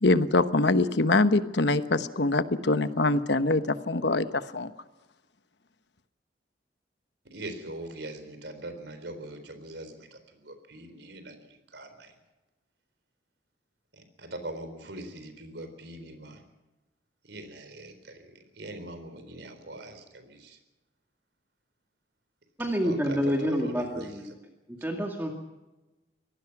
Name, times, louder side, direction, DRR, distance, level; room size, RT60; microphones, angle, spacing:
voice 1, 0.0-4.7, left 2 dB, 70° left, 11 dB, 1.1 m, -24 dB
voice 2, 7.3-12.1 14.2-16.4 17.2-18.2 18.6-20.6 22.8-24.1, right 1 dB, 75° right, 9 dB, 4.0 m, -42 dB
voice 3, 22.6-24.3 24.7-25.3, equal, 10° right, 1 dB, 2.2 m, -28 dB
24.5 x 18.5 x 6.0 m, 1.1 s
head